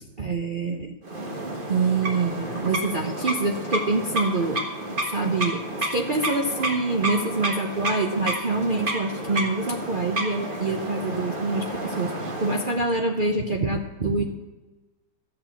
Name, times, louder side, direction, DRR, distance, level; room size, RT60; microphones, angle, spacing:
voice 1, 0.2-1.0 1.7-4.6 5.1-14.3, right 3 dB, 60° right, 3 dB, 0.5 m, -26 dB
sound 1, 1.0-12.9, right 1 dB, 30° right, 1.5 m, -30 dB
14.0 x 7.7 x 7.1 m, 1.2 s
omnidirectional pair, 2.1 m